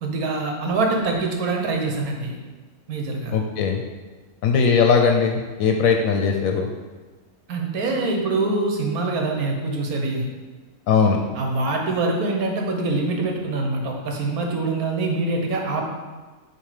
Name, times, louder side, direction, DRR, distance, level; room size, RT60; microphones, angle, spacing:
voice 1, 0.0-2.4 2.9-3.4 7.5-10.3 11.3-15.8, right 3 dB, 80° right, 1 dB, 1.4 m, -24 dB
voice 2, 3.3-3.8 4.4-6.7 10.9-11.2, left 5 dB, 75° left, 3 dB, 1.0 m, -19 dB
7.0 x 2.8 x 4.8 m, 1.3 s
omnidirectional pair, 1.5 m